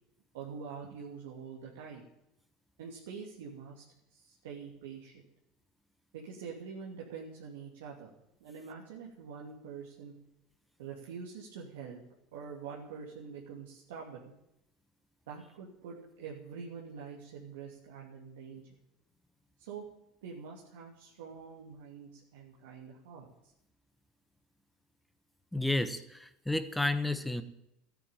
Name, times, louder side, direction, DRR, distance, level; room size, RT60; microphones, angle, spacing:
voice 1, 0.3-2.0 2.8-3.8 4.1-5.2 6.1-8.1 8.4-10.1 10.8-12.0 12.3-14.2 15.3-18.8 19.6-19.8 20.2-23.5, right 6 dB, 85° right, -3 dB, 2.8 m, -45 dB
voice 2, 25.5-27.4, left 2 dB, 5° left, 11 dB, 1.3 m, -31 dB
13.5 x 9.2 x 9.1 m, 0.84 s
supercardioid pair, 100°, 0 cm